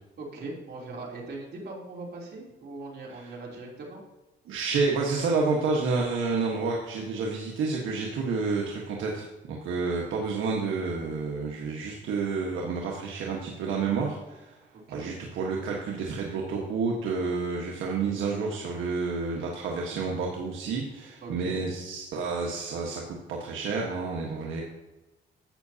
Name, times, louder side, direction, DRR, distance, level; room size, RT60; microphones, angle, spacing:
voice 1, 0.2-4.0 14.9-15.1 21.2-21.6, right 2 dB, 55° right, -2 dB, 3.4 m, -40 dB
voice 2, 4.5-14.6 14.9-24.6, right 4 dB, 80° right, -1 dB, 1.4 m, -30 dB
12.0 x 8.3 x 2.8 m, 1.1 s
cardioid pair, 90°, 20 cm